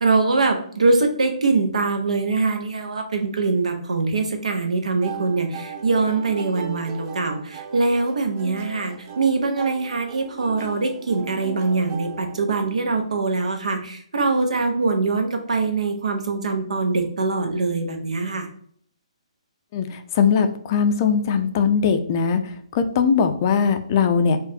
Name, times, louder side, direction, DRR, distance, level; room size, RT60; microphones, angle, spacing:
voice 1, 0.0-18.5, right 3 dB, 80° right, 5 dB, 0.8 m, -23 dB
sound 1, 5.0-13.0, right 6 dB, 25° right, 0.5 m, -37 dB
voice 2, 19.7-24.4, left 6 dB, 30° left, 8 dB, 0.4 m, -20 dB
4.7 x 2.4 x 2.7 m, 0.62 s
hypercardioid pair, 155°, 4 cm